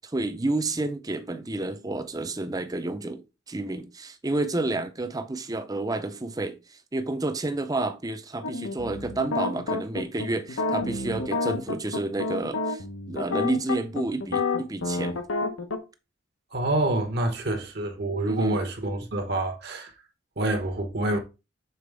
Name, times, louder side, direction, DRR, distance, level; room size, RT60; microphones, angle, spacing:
voice 1, 0.0-3.2 3.5-15.2 17.5-17.6 18.3-18.6, right 2 dB, 20° right, 0.5 m, -30 dB
sound 1, 8.4-15.8, left 3 dB, 80° left, 0.9 m, -29 dB
voice 2, 16.5-19.9 20.4-21.2, right 1 dB, 50° right, 1.0 m, -27 dB
6.8 x 4.2 x 3.4 m
head